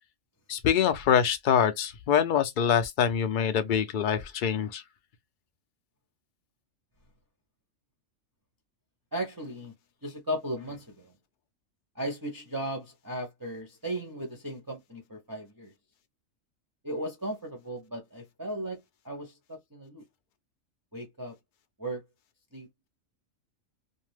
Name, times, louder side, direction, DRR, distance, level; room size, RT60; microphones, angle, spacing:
voice 1, 0.5-4.8, left 8 dB, 55° left, 0.6 m, -25 dB
voice 2, 9.1-9.7 10.0-11.1 12.0-15.7 16.8-18.8 19.0-20.0 20.9-21.4 21.8-22.0 22.5-22.7, right 1 dB, 20° right, 0.6 m, -36 dB
2.6 x 2.2 x 3.2 m
omnidirectional pair, 1.4 m